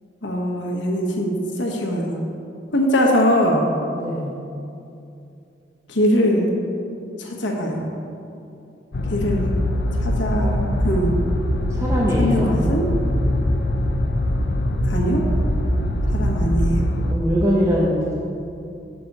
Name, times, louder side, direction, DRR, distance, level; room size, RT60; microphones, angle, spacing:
voice 1, 0.2-1.3 1.6-2.2 2.7-3.7 5.9-6.5 7.2-7.9 9.1-9.4 10.0-11.2 12.2-12.9 14.9-15.2 16.1-16.8, equal, 85° left, 0 dB, 1.2 m, -21 dB
voice 2, 3.9-4.3 11.7-12.6 16.9-18.1, equal, 15° right, -4 dB, 0.7 m, -22 dB
sound 1, 8.9-17.2, left 1 dB, 65° left, 0.5 m, -22 dB
7.2 x 6.0 x 5.3 m, 2.7 s
head